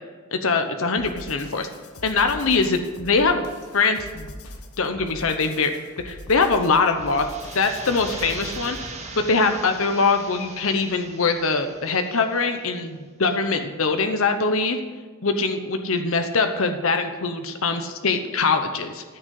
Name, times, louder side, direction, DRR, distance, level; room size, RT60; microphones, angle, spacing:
voice 1, 0.3-1.7 2.0-3.5 3.7-4.3 4.8-5.7 6.0-7.3 7.5-14.8 15.2-19.0, left 4 dB, 65° left, 6 dB, 0.9 m, -22 dB
sound 1, 1.0-8.9, left 1 dB, 90° left, 1.3 m, -42 dB
sound 2, 6.8-12.5, right 3 dB, 30° right, 1.3 m, -39 dB
14.0 x 6.5 x 8.3 m, 1.5 s
head